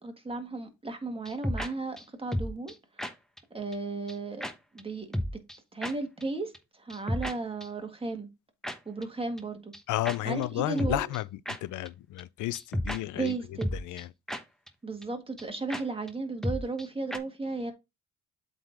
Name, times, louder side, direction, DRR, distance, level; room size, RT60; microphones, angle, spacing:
voice 1, 0.0-2.7 3.5-4.5 4.7-5.2 5.7-8.3 8.8-9.7 10.2-11.1 13.1-13.7 14.8-17.7, right 3 dB, 20° right, 1.8 m, -34 dB
sound 1, 1.3-1.7 2.0-2.1 2.3-2.7 3.0-3.1 3.4-3.5 3.7-3.8 4.1-4.2 4.4-4.5 4.8-4.9 5.1-5.6 5.8-5.9 6.2-6.3 6.5-6.6 6.9-7.3 7.6-7.7 8.6-8.8 9.0-9.1 9.4-9.5 9.7-9.8 10.1-10.2 10.4-10.5 10.8-11.2 11.5-11.6 11.9-12.0 12.2-12.3 12.5-13.0 13.3-13.4 13.6-14.0 14.3-14.4 14.7-14.8 15.0-15.1 15.4-15.5 15.7-15.8 16.1-16.2 16.4-16.9 17.1-17.2, equal, ahead, 1.0 m, -32 dB
voice 2, 9.9-11.2 11.6-13.3 13.7-14.1, left 16 dB, 80° left, 0.6 m, -32 dB
7.8 x 3.9 x 4.0 m
cardioid pair, 90°, 30 cm